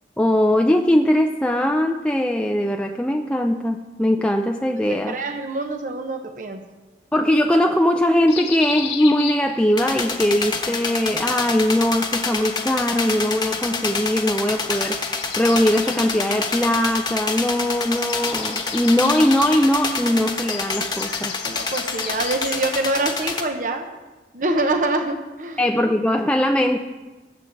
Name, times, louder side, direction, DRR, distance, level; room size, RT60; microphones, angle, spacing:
voice 1, 0.2-5.2 7.1-21.4 25.6-26.8, left 1 dB, 5° left, 3 dB, 0.4 m, -20 dB
voice 2, 4.7-6.6 21.4-24.0 24.3-25.6, right 2 dB, 45° right, 5 dB, 0.9 m, -25 dB
sound 1, 8.3-10.0 11.4-12.5 14.4-17.4 17.7-22.8, left 8 dB, 75° left, 1.1 m, -35 dB
sound 2, 9.8-23.4, left 4 dB, 20° left, 1.1 m, -27 dB
21.0 x 7.7 x 3.9 m, 1.2 s
head